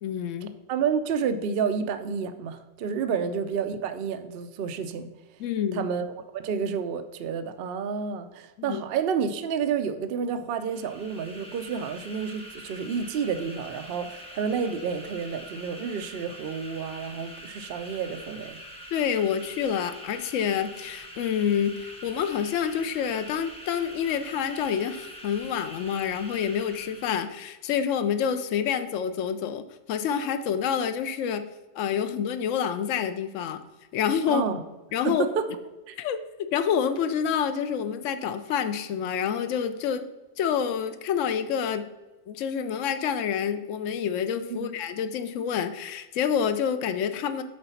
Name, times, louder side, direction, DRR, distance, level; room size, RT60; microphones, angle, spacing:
voice 1, 0.0-0.6 3.1-3.2 5.4-5.8 8.6-8.8 18.9-31.5 31.7-33.6 33.9-34.5 34.9-35.2 36.0-40.0 40.4-41.9 42.3-47.4, left 8 dB, 65° left, 9 dB, 0.9 m, -28 dB
voice 2, 0.7-5.1 5.7-6.1 6.3-18.6 34.3-34.6 35.0-35.5 35.9-36.0 44.5-44.7, right 6 dB, 60° right, 9 dB, 0.6 m, -30 dB
sound 1, 10.5-27.4, equal, 5° left, 1.3 m, -44 dB
7.8 x 4.0 x 5.6 m, 1.1 s
omnidirectional pair, 1.5 m